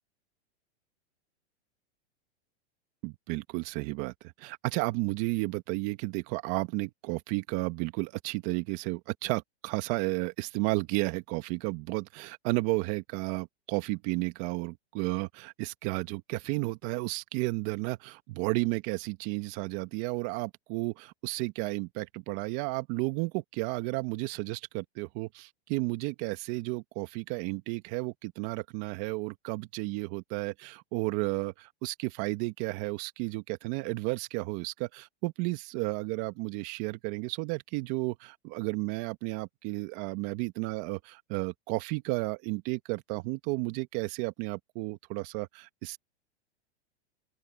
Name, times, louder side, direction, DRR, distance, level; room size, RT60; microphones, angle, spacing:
voice 1, 3.0-46.0, right 23 dB, 40° right, 1.8 m, -33 dB
open air
hypercardioid pair, 140°, 34 cm